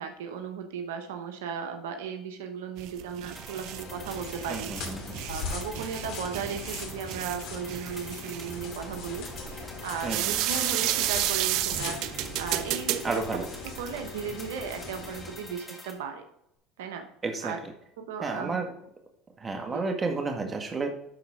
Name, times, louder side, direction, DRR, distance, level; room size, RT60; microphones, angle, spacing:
voice 1, 0.0-4.7 5.3-13.2 13.8-16.2 16.8-17.1 17.4-17.6 18.0-18.7 19.7-19.9, right 6 dB, 85° right, 6 dB, 0.9 m, -36 dB
sound 1, 2.8-14.1, right 14 dB, 65° right, 0.5 m, -32 dB
sound 2, 3.3-15.9, left 1 dB, 10° left, 2.7 m, -47 dB
sound 3, 3.6-15.5, left 4 dB, 60° left, 2.7 m, -40 dB
voice 2, 4.5-5.2 10.0-10.3 13.0-13.4 17.2-17.5 18.2-18.7 19.4-20.9, right 3 dB, 25° right, 4 dB, 1.7 m, -31 dB
11.5 x 4.1 x 4.9 m, 0.76 s
supercardioid pair, 90°, 0 cm